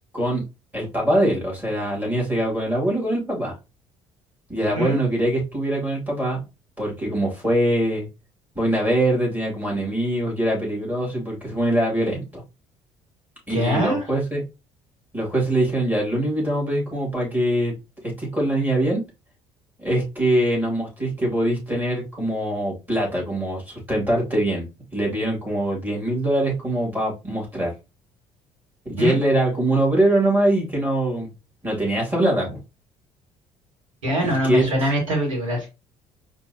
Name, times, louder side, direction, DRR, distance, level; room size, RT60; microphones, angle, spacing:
voice 1, 0.7-3.5 4.5-6.4 6.8-8.1 8.6-12.4 13.5-14.4 15.1-17.7 18.0-19.0 19.8-27.7 28.8-31.3 31.6-32.6 34.2-34.7, right 1 dB, 10° right, -3 dB, 2.5 m, -23 dB
voice 2, 13.5-14.0 29.0-29.2 34.0-35.7, equal, 80° right, 0 dB, 1.5 m, -23 dB
4.3 x 2.7 x 2.8 m, 0.27 s
figure-of-eight pair, 50°, 16 cm